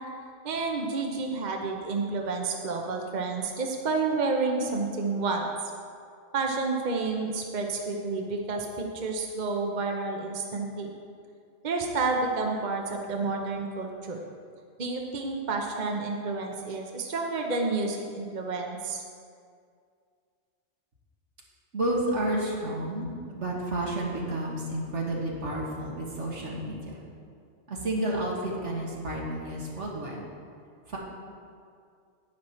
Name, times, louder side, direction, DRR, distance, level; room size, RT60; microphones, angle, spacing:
voice 1, 0.4-5.5 6.3-10.9 11.6-14.2 14.8-19.0, right 3 dB, 40° right, 1 dB, 0.9 m, -30 dB
voice 2, 21.7-27.0 27.7-30.2 30.9-31.0, right 1 dB, 75° right, -3 dB, 2.1 m, -31 dB
10.5 x 9.4 x 4.3 m, 2.3 s
omnidirectional pair, 1.2 m